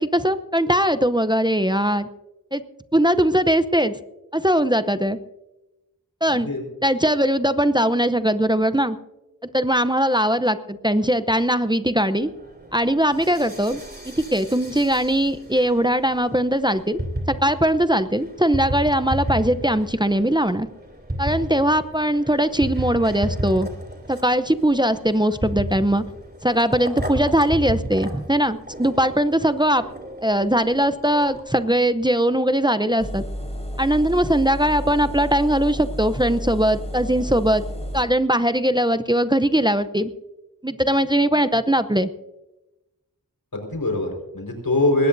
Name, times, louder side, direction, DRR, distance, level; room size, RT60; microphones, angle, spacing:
voice 1, 0.0-2.1 2.5-2.6 2.9-3.9 4.3-5.2 6.2-6.5 6.8-9.0 9.5-12.3 12.7-13.8 14.2-17.0 17.3-20.7 21.2-23.7 24.1-26.0 26.4-29.8 30.2-33.2 33.8-37.6 37.9-40.1 40.6-42.1, right 1 dB, 15° right, 11 dB, 0.7 m, -20 dB
voice 2, 6.3-6.6 43.5-45.1, left 1 dB, 85° left, 2 dB, 4.7 m, -23 dB
sound 1, 12.2-31.6, right 1 dB, 30° right, 3.1 m, -33 dB
Engine, 33.0-38.0, equal, 20° left, 4.7 m, -31 dB
21.0 x 18.0 x 2.7 m, 0.99 s
wide cardioid pair, 45°, 34 cm